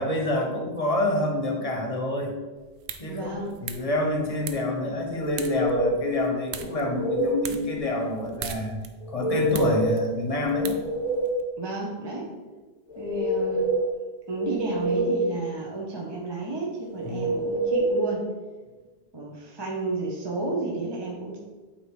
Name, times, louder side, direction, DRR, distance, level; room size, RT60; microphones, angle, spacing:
voice 1, 0.0-2.3 3.0-3.3 3.6-8.7 9.1-10.8 17.0-17.3, left 1 dB, 35° left, 2 dB, 1.0 m, -27 dB
sound 1, 2.6-11.4, right 7 dB, 85° right, 0.9 m, -42 dB
voice 2, 3.1-3.5 11.6-12.3 13.0-13.7 14.3-18.3 19.1-21.4, right 2 dB, 25° right, -2 dB, 0.8 m, -31 dB
sound 2, 5.2-6.1 6.6-7.4 9.0-10.0 10.4-11.5 12.9-13.9 14.4-15.4 16.9-18.0, right 1 dB, 10° right, 1.3 m, -27 dB
8.1 x 2.9 x 4.8 m, 1.3 s
omnidirectional pair, 1.1 m